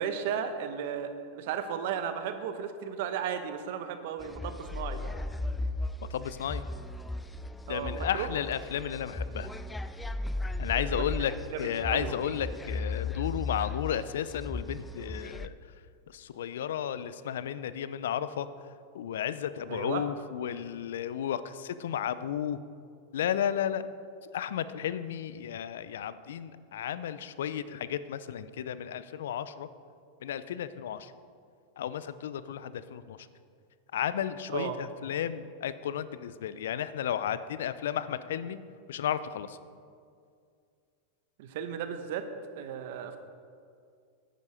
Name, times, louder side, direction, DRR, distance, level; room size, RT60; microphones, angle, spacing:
voice 1, 0.0-5.1 7.7-8.3 10.7-12.1 19.7-20.1 34.5-34.8 41.4-42.3 42.6-43.2, right 8 dB, 65° right, 9 dB, 0.9 m, -35 dB
sound 1, 4.2-15.5, left 2 dB, 10° left, 0.4 m, -36 dB
voice 2, 6.1-6.6 7.7-9.5 10.6-11.3 11.6-15.5 16.1-18.5 18.9-22.6 23.1-23.8 24.3-29.7 30.2-31.1 31.8-33.2 33.9-38.6 38.9-39.6, left 9 dB, 75° left, 14 dB, 0.5 m, -33 dB
9.7 x 9.2 x 4.9 m, 2.3 s
hypercardioid pair, 105°, 0 cm